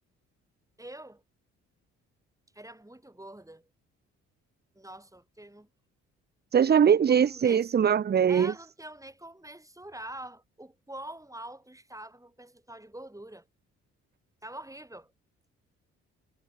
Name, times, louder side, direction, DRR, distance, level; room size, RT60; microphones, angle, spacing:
voice 1, 0.8-1.2 2.5-3.7 4.7-5.7 7.1-7.6 8.3-13.5 14.4-15.1, right 1 dB, 10° right, 5.8 m, -45 dB
voice 2, 6.5-8.5, right 8 dB, 30° right, 0.6 m, -21 dB
hypercardioid pair, 50°, 34 cm